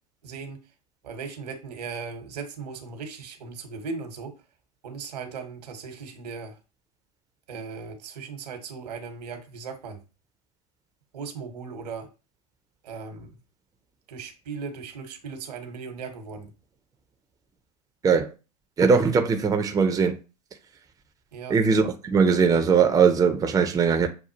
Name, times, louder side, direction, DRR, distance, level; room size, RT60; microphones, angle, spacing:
voice 1, 0.2-0.6 1.0-4.3 4.8-6.5 7.5-10.0 11.1-12.1 12.8-13.3 14.1-16.5 21.3-21.6, right 5 dB, 75° right, 1.3 m, -37 dB
voice 2, 18.8-20.2 21.5-24.1, right 5 dB, 15° right, 0.6 m, -20 dB
6.6 x 2.3 x 2.8 m
hypercardioid pair, 95°, 21 cm